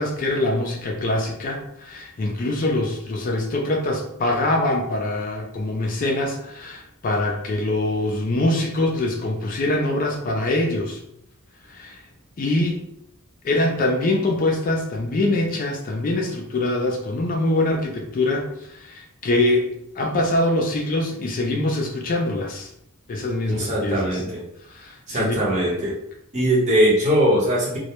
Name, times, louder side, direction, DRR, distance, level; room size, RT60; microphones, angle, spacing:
voice 1, 0.0-11.0 11.7-12.0 12.4-12.8 13.4-18.4 18.7-22.7 23.1-24.2 24.7-25.4, left 2 dB, 40° left, 1 dB, 0.3 m, -24 dB
voice 2, 23.5-24.4 25.1-25.9 26.3-27.8, equal, 35° right, -4 dB, 0.8 m, -20 dB
2.2 x 2.0 x 2.8 m, 0.77 s
head